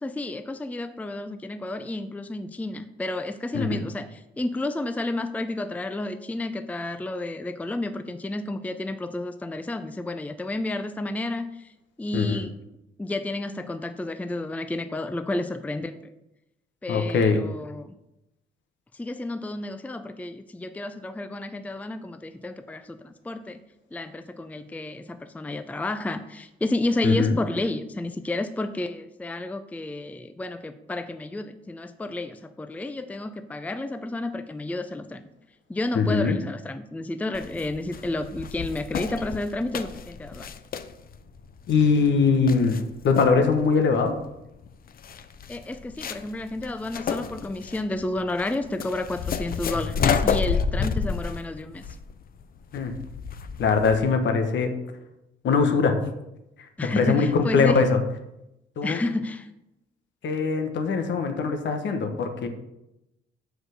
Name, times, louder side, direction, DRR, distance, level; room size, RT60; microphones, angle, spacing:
voice 1, 0.0-11.7 12.0-12.6 13.0-16.0 16.8-17.9 18.9-23.6 23.9-35.3 35.7-40.5 45.5-52.0 56.8-57.8 58.8-59.5, left 2 dB, 5° left, 9 dB, 0.5 m, -31 dB
voice 2, 16.9-17.4 27.0-27.4 35.9-36.4 41.7-42.8 43.0-44.2 52.7-52.9 53.6-54.7 55.4-56.0 56.8-58.0 58.8-59.0 60.2-62.5, left 5 dB, 65° left, 6 dB, 1.2 m, -22 dB
sound 1, 37.3-54.1, left 6 dB, 50° left, 0.6 m, -31 dB
6.2 x 4.9 x 6.5 m, 0.90 s
cardioid pair, 90°, 20 cm